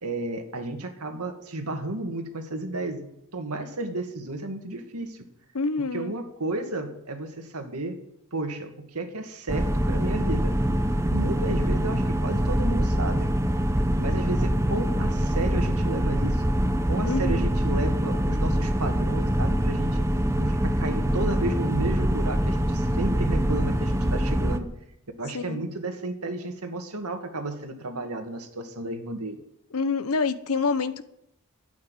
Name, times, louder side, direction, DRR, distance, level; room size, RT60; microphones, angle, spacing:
voice 1, 0.0-3.1 3.3-5.3 5.8-8.0 8.3-10.6 11.1-13.3 14.0-16.5 16.9-20.1 20.4-24.7 25.2-29.4, right 2 dB, 90° right, 5 dB, 2.1 m, -32 dB
voice 2, 5.5-6.1 17.0-17.5 25.3-25.7 29.7-31.1, left 4 dB, 80° left, 12 dB, 0.9 m, -27 dB
sound 1, 9.5-24.6, equal, 15° right, 0.8 m, -24 dB
12.5 x 8.5 x 9.7 m, 0.80 s
head